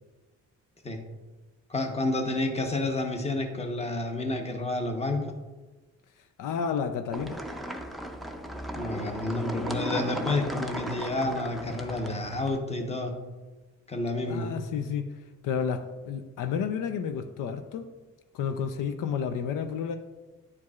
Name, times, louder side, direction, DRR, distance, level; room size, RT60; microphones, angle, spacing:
voice 1, 1.7-5.2 8.8-13.1 13.9-14.5, left 2 dB, 20° left, 4 dB, 0.9 m, -30 dB
voice 2, 6.4-7.4 14.2-15.1 15.4-17.9 18.3-20.0, left 7 dB, 75° left, 8 dB, 0.5 m, -31 dB
sound 1, 7.1-12.6, right 1 dB, ahead, 0.5 m, -36 dB
9.7 x 4.6 x 2.4 m, 1.2 s
cardioid pair, 95°, 32 cm